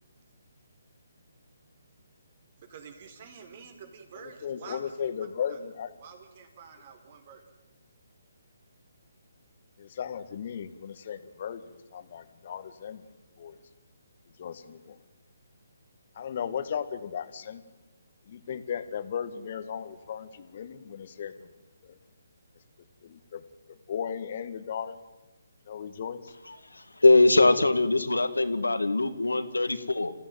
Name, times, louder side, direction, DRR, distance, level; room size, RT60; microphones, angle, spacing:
voice 1, 2.6-4.9 5.5-5.6 6.0-7.4, right 6 dB, 40° right, 6 dB, 4.9 m, -48 dB
voice 2, 4.2-5.9 9.8-13.1 13.4-13.6 14.4-15.0 16.2-17.6 18.2-21.5 21.8-22.0 23.0-25.0 25.7-26.3, left 8 dB, 45° left, 11 dB, 1.9 m, -36 dB
voice 3, 26.7-30.1, left 2 dB, 90° left, 11 dB, 2.3 m, -22 dB
28.0 x 15.5 x 9.4 m, 1.1 s
figure-of-eight pair, 145°, 0 cm